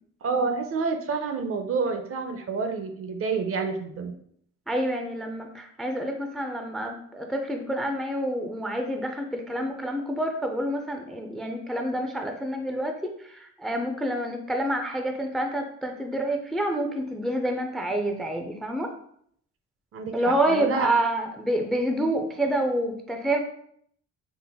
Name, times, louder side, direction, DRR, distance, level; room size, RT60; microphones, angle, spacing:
voice 1, 0.2-4.1 19.9-20.9, right 4 dB, 50° right, 6 dB, 0.5 m, -28 dB
voice 2, 4.7-18.9 20.1-23.4, right 1 dB, ahead, 3 dB, 0.4 m, -28 dB
3.9 x 2.1 x 3.4 m, 0.66 s
cardioid pair, 90°, 30 cm